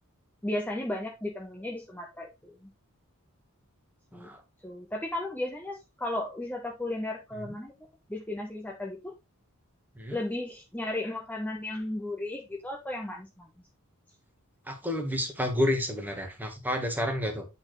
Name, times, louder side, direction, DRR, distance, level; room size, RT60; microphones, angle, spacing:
voice 1, 0.4-2.7 4.1-4.3 4.6-7.7 8.1-9.1 10.1-13.5, left 1 dB, 10° left, 0 dB, 0.8 m, -35 dB
voice 2, 14.7-17.5, left 1 dB, 10° right, 5 dB, 1.3 m, -30 dB
8.6 x 4.2 x 3.1 m, 0.24 s
head